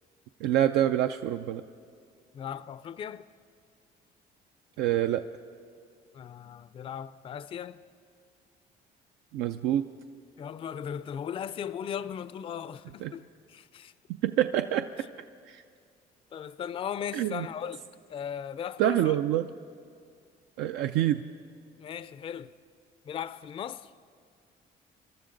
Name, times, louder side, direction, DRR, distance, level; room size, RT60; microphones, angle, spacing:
voice 1, 0.4-1.6 4.8-5.2 9.3-9.9 13.0-13.1 14.2-14.9 15.5-15.6 17.1-17.5 18.8-19.5 20.6-21.2, right 12 dB, 90° right, 0.4 m, -26 dB
voice 2, 2.3-3.3 6.1-7.8 10.4-13.9 15.0-15.1 16.3-19.2 21.8-22.5 23.1-23.9, left 8 dB, 30° left, 0.4 m, -37 dB
25.0 x 12.5 x 3.9 m
cardioid pair, 110°, 17 cm